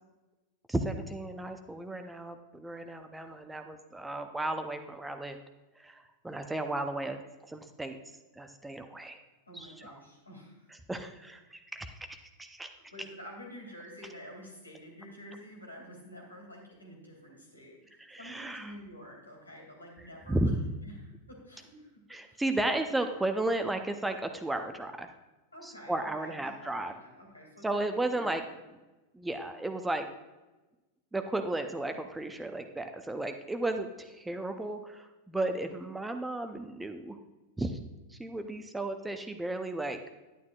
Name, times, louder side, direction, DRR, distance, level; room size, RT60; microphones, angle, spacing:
voice 1, 0.7-5.4 5.8-7.2 7.5-8.0 8.3-9.2 9.5-9.9 10.9-12.7 18.0-18.7 20.3-20.6 22.1-25.1 25.6-26.9 27.6-28.4 29.1-30.1 31.1-37.2 37.6-37.8 38.1-40.0, right 2 dB, 5° right, 7 dB, 0.6 m, -34 dB
voice 2, 9.5-10.7 12.7-20.5 20.8-21.0 21.3-22.4 25.5-28.5, equal, 85° left, -1 dB, 2.4 m, -49 dB
11.0 x 9.4 x 2.4 m, 1.1 s
figure-of-eight pair, 90°, 0 cm